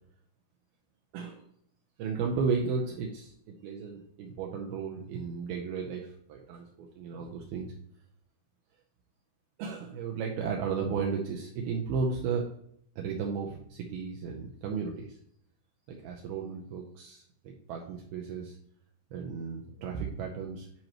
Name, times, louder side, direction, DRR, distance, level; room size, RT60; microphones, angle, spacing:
voice 1, 1.1-1.5 2.0-7.7 9.6-12.5 13.0-15.2 15.9-18.6 19.1-20.7, right 5 dB, 80° right, 0 dB, 2.5 m, -34 dB
10.5 x 4.5 x 3.0 m, 0.68 s
omnidirectional pair, 4.8 m